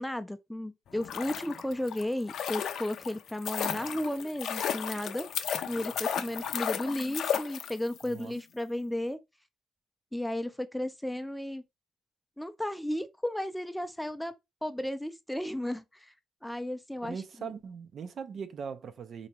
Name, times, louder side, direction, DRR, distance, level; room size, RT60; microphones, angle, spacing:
voice 1, 0.0-5.3 5.6-9.2 10.1-11.6 12.4-14.3 14.6-16.1 16.4-17.5, left 1 dB, 5° left, 0.4 m, -34 dB
sound 1, 0.9-8.1 8.3-8.4, left 8 dB, 70° left, 0.4 m, -34 dB
voice 2, 17.0-19.3, right 6 dB, 55° right, 0.4 m, -40 dB
3.9 x 2.2 x 2.9 m
cardioid pair, 90°, 0 cm